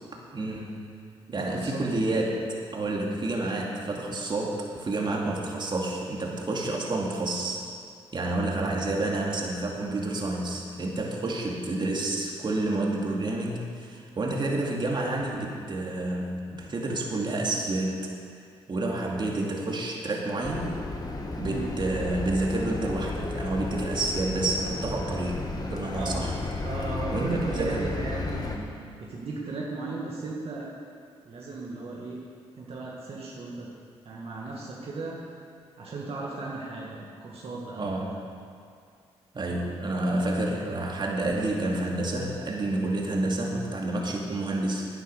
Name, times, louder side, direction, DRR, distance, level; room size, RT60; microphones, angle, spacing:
voice 1, 0.3-0.8 1.3-2.4 2.7-7.6 8.1-18.0 18.7-20.8 21.4-26.4 27.1-27.9 37.8-38.3 39.3-44.9, right 2 dB, 40° right, -1 dB, 2.3 m, -29 dB
voice 2, 1.3-2.0 21.4-21.7 26.0-26.3 26.6-30.7 31.3-32.2 32.6-33.7 34.0-35.4 35.8-38.2 40.0-40.3, right 3 dB, 60° right, -4 dB, 1.9 m, -36 dB
sound 1, 20.4-28.6, left 2 dB, 35° left, 1.6 m, -33 dB
11.0 x 9.1 x 6.7 m, 2.3 s
supercardioid pair, 60°, 11 cm